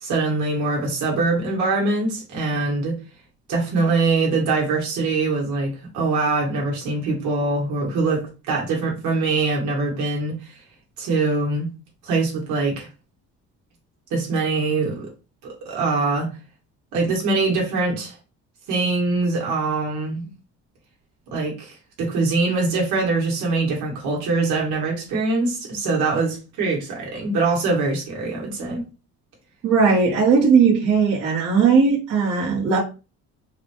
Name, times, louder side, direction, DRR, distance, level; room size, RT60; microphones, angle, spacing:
voice 1, 0.0-2.9 3.5-10.6 11.0-11.7 12.0-12.9 14.1-15.1 15.4-16.3 16.9-18.1 18.7-20.3 21.3-28.9, right 3 dB, 75° right, 1.4 m, -23 dB
voice 2, 29.6-32.8, right 5 dB, 55° right, 1.3 m, -18 dB
4.0 x 2.2 x 2.9 m
cardioid pair, 160°, 29 cm